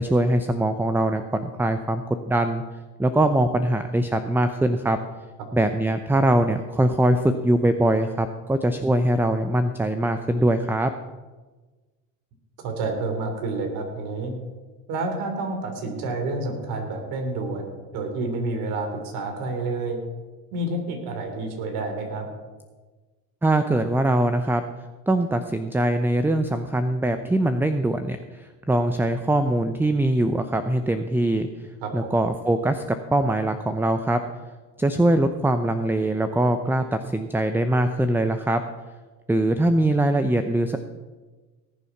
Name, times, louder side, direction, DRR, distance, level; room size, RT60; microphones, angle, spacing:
voice 1, 0.0-2.6 3.0-5.0 5.5-10.9 23.4-24.6 25.1-31.5 31.9-34.2 34.8-38.6 39.3-40.8, right 1 dB, 5° right, 9 dB, 0.7 m, -22 dB
voice 2, 12.6-14.4 14.9-20.0 20.5-22.3 31.8-32.2, right 2 dB, 70° right, 4 dB, 3.6 m, -29 dB
18.5 x 7.1 x 5.9 m, 1.3 s
supercardioid pair, 90°, 38 cm